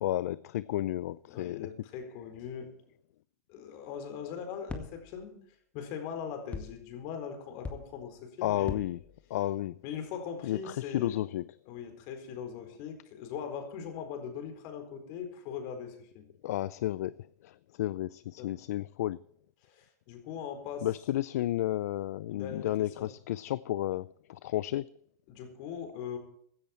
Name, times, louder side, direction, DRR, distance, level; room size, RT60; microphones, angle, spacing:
voice 1, 0.0-1.7 8.4-9.0 9.3-9.7 10.4-11.4 16.4-17.2 17.4-19.2 20.8-24.9, left 14 dB, 65° left, 0.5 m, -32 dB
voice 2, 1.3-2.7 3.5-5.4 5.7-8.8 9.8-11.2 11.7-16.3 18.4-18.5 19.6-20.9 22.3-23.1 25.3-26.2, left 7 dB, 45° left, 4.5 m, -40 dB
sound 1, 4.7-5.2 6.5-7.0 7.6-8.2 8.6-9.3, left 3 dB, 15° left, 1.9 m, -41 dB
16.0 x 13.0 x 4.5 m
hypercardioid pair, 120°, 9 cm